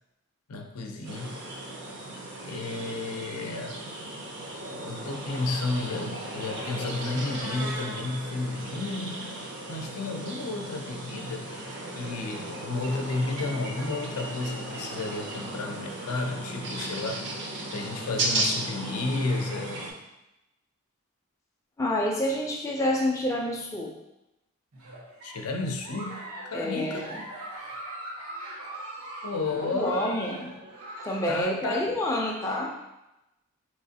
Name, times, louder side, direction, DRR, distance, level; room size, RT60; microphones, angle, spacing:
voice 1, 0.5-1.4 2.5-3.8 4.8-9.4 9.7-11.7 12.0-17.4 17.7-19.9 25.2-27.1 29.2-30.1 30.4-30.5 31.3-31.9, left 3 dB, 90° left, 3 dB, 0.5 m, -32 dB
sound 1, 1.0-19.9, right 2 dB, 50° right, 0.5 m, -36 dB
voice 2, 21.8-23.9 26.5-27.2 29.6-30.5 31.0-32.8, left 1 dB, 15° left, -1 dB, 0.4 m, -28 dB
Giggle, 24.7-31.4, right 1 dB, 80° right, 1.0 m, -41 dB
4.1 x 3.0 x 2.7 m, 0.93 s
head